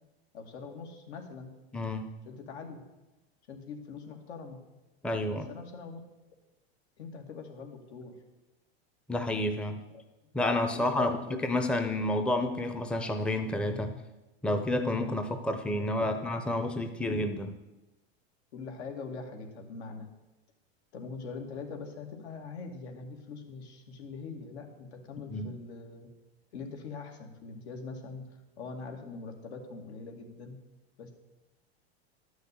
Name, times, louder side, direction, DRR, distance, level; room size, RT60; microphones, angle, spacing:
voice 1, 0.3-1.5 2.3-2.8 3.5-4.6 5.3-6.0 7.0-8.2 9.9-10.0 10.7-11.3 16.0-16.4 17.1-17.2 18.5-20.1 20.9-26.1 26.5-30.6 31.0-31.1, left 4 dB, 80° left, 3 dB, 2.4 m, -43 dB
voice 2, 1.7-2.1 5.0-5.5 9.1-9.8 10.3-11.2 11.4-14.0 14.4-17.5 25.3-25.5, left 1 dB, 5° left, 7 dB, 0.6 m, -30 dB
11.5 x 6.4 x 8.4 m, 1.0 s
supercardioid pair, 135°, 32 cm